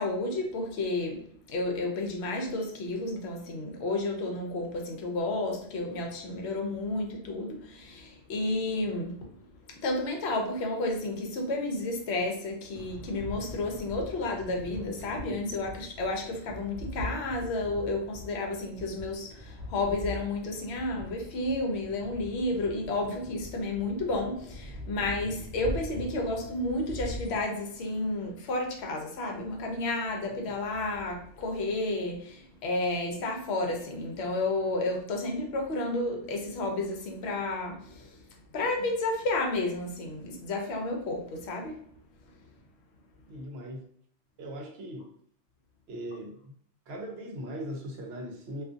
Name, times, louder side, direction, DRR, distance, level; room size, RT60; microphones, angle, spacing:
voice 1, 0.0-9.3 9.7-38.2 38.5-41.8, left 2 dB, 65° left, 2 dB, 0.8 m, -31 dB
sound 1, 12.7-27.4, left 1 dB, 45° left, 1.1 m, -42 dB
voice 2, 43.3-43.8 44.4-45.1 45.9-46.5 46.9-48.6, equal, 65° right, 2 dB, 0.8 m, -39 dB
2.4 x 2.4 x 2.5 m, 0.62 s
omnidirectional pair, 1.3 m